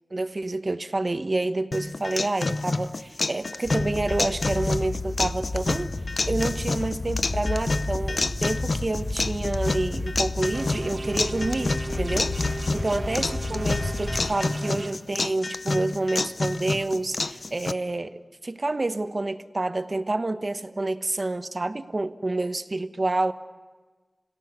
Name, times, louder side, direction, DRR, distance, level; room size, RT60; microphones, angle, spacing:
voice 1, 0.1-5.9 6.3-23.3, right 2 dB, 45° right, 1.1 m, -28 dB
sound 1, 1.7-17.7, left 3 dB, 60° left, 0.7 m, -29 dB
sound 2, 3.6-14.3, left 2 dB, 40° left, 1.3 m, -32 dB
sound 3, 10.5-14.9, right 2 dB, 60° right, 1.7 m, -35 dB
28.0 x 17.5 x 9.6 m
wide cardioid pair, 85°, 0 cm